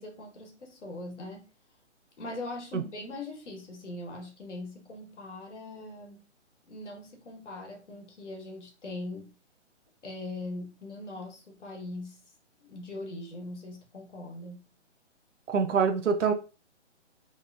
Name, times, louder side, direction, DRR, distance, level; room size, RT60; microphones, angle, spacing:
voice 1, 0.0-1.5 2.2-6.2 6.7-9.3 10.0-12.2 12.6-14.6, left 2 dB, 75° left, 1.2 m, -41 dB
voice 2, 15.5-16.3, right 6 dB, 85° right, 0.7 m, -25 dB
2.8 x 2.1 x 2.4 m
hypercardioid pair, 170°, 36 cm